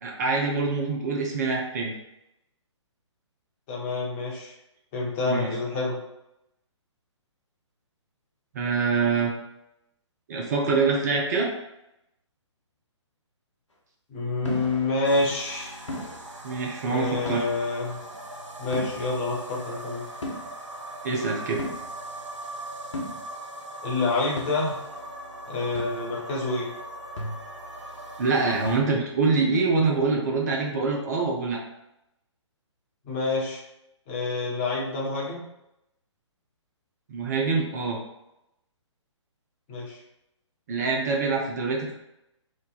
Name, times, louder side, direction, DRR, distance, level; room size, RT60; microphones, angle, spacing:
voice 1, 0.0-1.9 5.3-5.5 8.5-9.3 10.3-11.5 16.4-17.4 21.0-21.6 28.2-31.6 37.1-38.0 40.7-41.9, right 4 dB, 35° right, -1 dB, 0.5 m, -25 dB
voice 2, 3.7-4.5 4.9-6.0 14.1-15.8 16.8-18.0 18.6-20.0 23.8-24.8 25.5-26.7 33.0-33.6 34.1-35.4 39.7-40.0, left 3 dB, 25° left, -4 dB, 0.9 m, -27 dB
sound 1, 14.5-14.9 15.9-16.2 17.3-17.5 18.7-19.0 20.2-20.4 21.6-21.8 22.9-23.2 24.4-24.5 25.8-26.1 27.2-27.6 28.7-29.0, left 1 dB, 75° left, 0.9 m, -34 dB
sound 2, 15.0-28.8, right 1 dB, 80° right, 0.7 m, -40 dB
3.1 x 2.1 x 4.0 m, 0.85 s
figure-of-eight pair, 130°, 16 cm